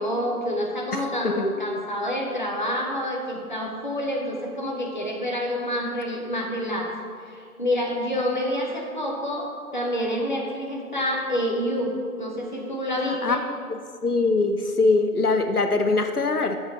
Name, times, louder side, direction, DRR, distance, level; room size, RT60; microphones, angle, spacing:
voice 1, 0.0-6.9 7.2-13.4, equal, 30° left, -1 dB, 0.9 m, -28 dB
voice 2, 13.2-16.6, left 3 dB, 75° left, 7 dB, 0.8 m, -23 dB
8.0 x 7.5 x 5.3 m, 2.1 s
figure-of-eight pair, 170°, 46 cm